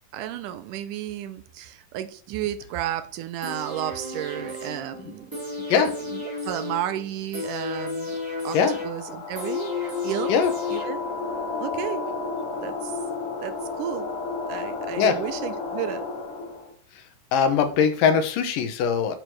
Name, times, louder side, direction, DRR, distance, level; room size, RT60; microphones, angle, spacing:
voice 1, 0.1-5.3 5.6-8.2 8.4-8.6 8.8-10.3 10.7-11.0 11.6-12.0 12.6-13.0 13.4-14.1 14.5-16.1, right 11 dB, 80° right, 11 dB, 2.1 m, -32 dB
sound 1, 3.4-11.4 11.7-11.8, left 4 dB, 5° right, 2.3 m, -33 dB
sound 2, 8.3-16.7, left 4 dB, 65° left, 3.7 m, -32 dB
voice 2, 17.3-19.1, left 6 dB, 85° left, 9 dB, 2.7 m, -21 dB
6.7 x 6.2 x 6.1 m, 0.44 s
omnidirectional pair, 3.9 m